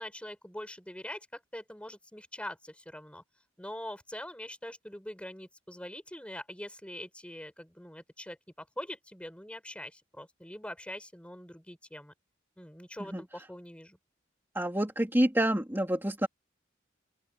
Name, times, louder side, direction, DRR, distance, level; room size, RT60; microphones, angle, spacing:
voice 1, 0.0-3.2 3.6-12.1 12.6-14.0, left 1 dB, 5° left, 5.0 m, -43 dB
voice 2, 14.5-16.3, right 1 dB, 10° right, 2.8 m, -27 dB
open air
head